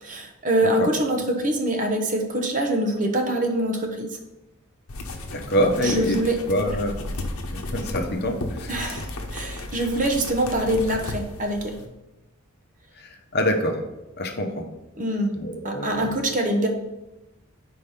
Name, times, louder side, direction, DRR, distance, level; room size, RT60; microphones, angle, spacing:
voice 1, 0.0-4.1 5.8-6.4 8.7-11.7 15.0-15.3 15.6-16.7, right 1 dB, 40° right, 3 dB, 0.9 m, -24 dB
sound 1, 4.9-11.9, left 2 dB, 85° left, 0.9 m, -34 dB
voice 2, 5.3-6.2 6.5-7.0 7.5-8.7 13.0-13.8 14.2-14.7 15.4-16.1, equal, 50° left, 3 dB, 0.8 m, -25 dB
5.1 x 4.7 x 5.7 m, 0.98 s
head